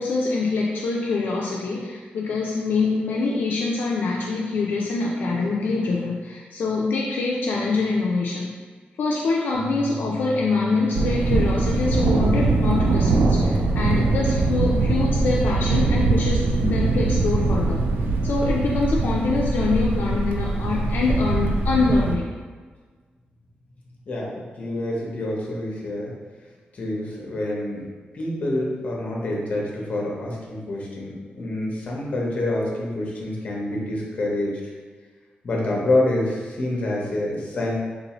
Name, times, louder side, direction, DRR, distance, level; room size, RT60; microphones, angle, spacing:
voice 1, 0.0-8.5 9.0-17.8 18.2-22.3, left 3 dB, 70° left, -3 dB, 0.4 m, -24 dB
sound 1, 9.5-21.3, left 1 dB, 45° right, 1.3 m, -36 dB
Thunder, 11.0-22.2, right 3 dB, 80° right, 0.4 m, -22 dB
voice 2, 24.1-26.1 26.7-27.8 28.1-34.6 35.4-37.7, left 1 dB, 40° left, -3 dB, 0.8 m, -27 dB
3.8 x 2.7 x 2.9 m, 1.5 s
wide cardioid pair, 175°, 3 cm